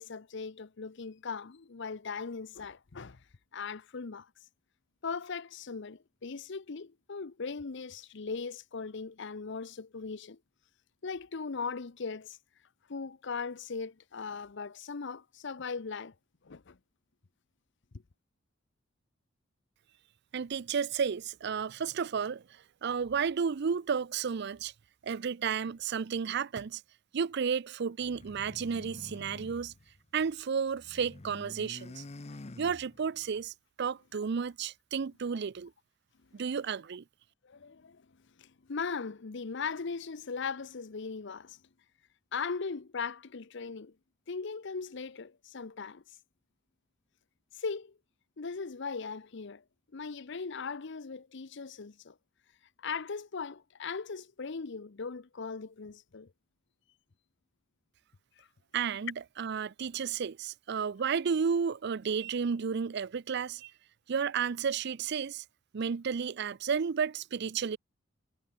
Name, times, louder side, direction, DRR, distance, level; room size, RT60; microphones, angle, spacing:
voice 1, 0.0-3.2 3.5-4.3 5.0-10.4 11.0-12.4 12.9-16.1 16.4-16.8 37.4-38.1 38.4-41.6 42.3-43.9 44.3-46.0 47.6-47.9 48.4-49.6 49.9-52.2 52.8-56.3 58.4-58.5, left 5 dB, 65° left, 0.7 m, -39 dB
voice 2, 20.3-22.4 22.8-24.7 25.0-26.8 27.1-29.7 30.1-32.0 32.6-35.7 36.3-37.0 58.7-63.7 64.1-65.4 65.7-67.8, right 6 dB, 60° right, 0.5 m, -32 dB
sound 1, 28.0-30.4 30.7-33.3, left 2 dB, 35° left, 0.7 m, -48 dB
head